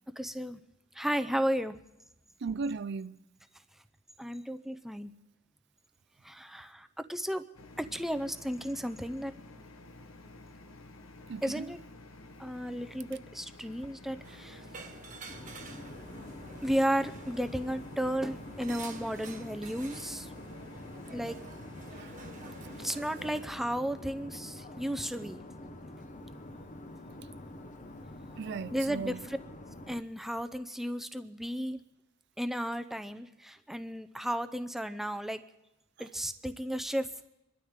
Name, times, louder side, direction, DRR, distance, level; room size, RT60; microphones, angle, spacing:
voice 1, 0.2-0.6 1.0-1.8 4.2-5.1 6.2-7.4 7.8-9.3 11.4-11.8 12.4-14.6 16.6-20.3 21.1-21.4 22.8-25.4 28.7-29.4 29.9-31.8 32.4-35.4 36.0-37.1, equal, ahead, 0.6 m, -34 dB
voice 2, 2.4-3.2 11.3-11.7 22.0-22.1 28.4-29.2, right 4 dB, 55° right, 0.4 m, -36 dB
sound 1, 7.5-23.5, left 2 dB, 80° left, 1.2 m, -51 dB
sound 2, 14.2-23.5, right 3 dB, 40° right, 1.4 m, -49 dB
sound 3, 15.3-30.0, left 1 dB, 40° left, 1.0 m, -47 dB
26.0 x 12.5 x 3.7 m
head